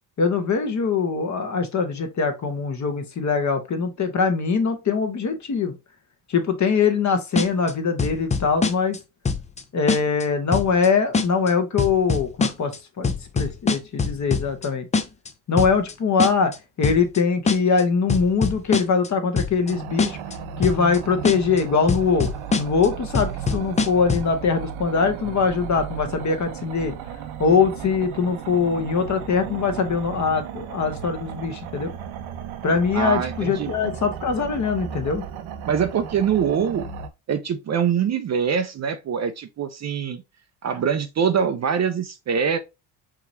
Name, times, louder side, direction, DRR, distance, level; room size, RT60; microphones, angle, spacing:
voice 1, 0.2-5.7 6.3-9.0 9.7-14.8 15.5-16.5 16.8-20.2 20.6-22.3 22.6-27.0 27.4-31.9 32.6-35.2, left 5 dB, 35° left, 1.0 m, -22 dB
sound 1, 7.4-7.7 8.0-9.0 9.2-9.6 9.9-10.2 10.5-10.9 11.1-11.5 11.8-12.8 13.0-14.7 14.9-15.3 15.6-15.9 16.2-16.6 16.8-17.2 17.5-17.8 18.1-19.1 19.4-19.7 20.0-20.3 20.6-21.0 21.2-21.6 21.9-22.9 23.1-24.3, left 4 dB, 15° left, 0.4 m, -23 dB
sound 2, 19.7-37.1, right 8 dB, 70° right, 0.9 m, -35 dB
voice 2, 32.9-34.0 35.7-36.8 37.3-40.2 40.6-42.6, right 7 dB, 35° right, 0.6 m, -24 dB
4.7 x 3.0 x 2.6 m
supercardioid pair, 80°, 49 cm